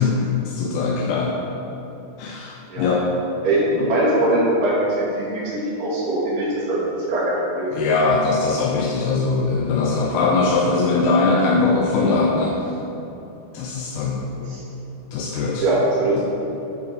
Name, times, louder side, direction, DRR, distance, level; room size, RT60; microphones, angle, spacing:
voice 1, 0.0-1.5 2.2-3.1 3.7-3.9 7.7-12.6 13.5-14.3 15.1-15.7 16.2-16.3, left 3 dB, 80° left, -2 dB, 2.4 m, -21 dB
voice 2, 3.4-7.7 14.5-14.6 15.6-16.2, right 1 dB, 75° right, -9 dB, 4.3 m, -21 dB
12.0 x 4.7 x 4.5 m, 2.9 s
omnidirectional pair, 4.6 m